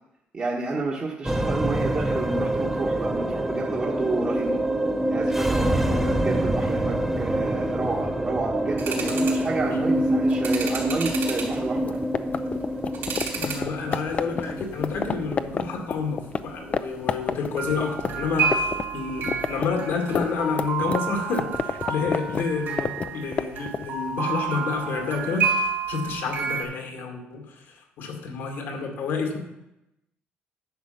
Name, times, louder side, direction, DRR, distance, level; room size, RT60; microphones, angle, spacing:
voice 1, 0.3-4.6 5.1-12.0, right 3 dB, 35° right, -3 dB, 1.3 m, -30 dB
sound 1, 1.2-19.7, right 1 dB, 5° right, 0.8 m, -27 dB
voice 2, 5.7-6.1 9.1-9.3 9.8-9.9 13.3-27.6 28.0-29.4, left 5 dB, 75° left, 2 dB, 2.2 m, -29 dB
sound 2, 8.8-9.5 10.2-11.6 12.2-13.6 13.9-14.4 14.9-15.1 17.6-26.6, right 5 dB, 65° right, 3.4 m, -30 dB
sound 3, 11.8-16.4 16.7-16.8 17.1-18.8 19.1-23.9, left 6 dB, 35° left, 0.5 m, -28 dB
10.5 x 6.6 x 5.7 m, 0.89 s
cardioid pair, 110°, 4 cm